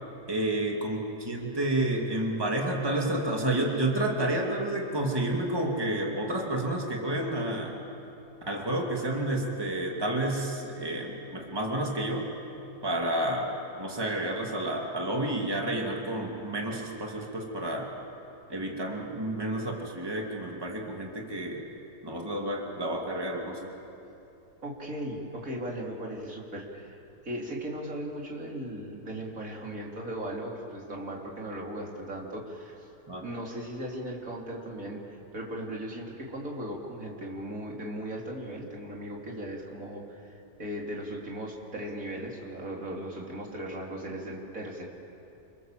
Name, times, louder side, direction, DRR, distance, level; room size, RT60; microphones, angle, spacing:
voice 1, 0.3-7.8 8.5-12.3 12.8-17.9 18.5-21.6 22.0-23.7 33.1-33.2, right 1 dB, 15° right, 0 dB, 2.6 m, -30 dB
voice 2, 24.6-32.9 33.2-44.9, right 1 dB, 55° right, -2 dB, 3.9 m, -37 dB
27.5 x 25.5 x 7.6 m, 2.9 s
omnidirectional pair, 1.7 m